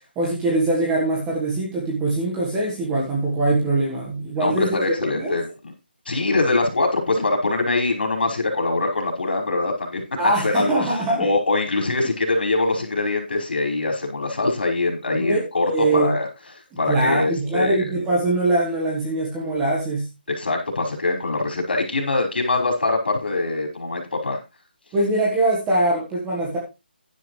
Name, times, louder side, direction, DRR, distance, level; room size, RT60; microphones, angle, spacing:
voice 1, 0.1-5.4 10.2-11.2 15.1-16.2 16.9-20.1 24.9-26.6, right 2 dB, 5° right, -3 dB, 1.5 m, -22 dB
voice 2, 4.4-5.7 6.1-10.7 11.2-16.3 16.8-17.8 20.3-24.4, left 2 dB, 65° left, 3 dB, 5.4 m, -23 dB
11.0 x 11.0 x 3.2 m, 0.27 s
hypercardioid pair, 175°, 6 cm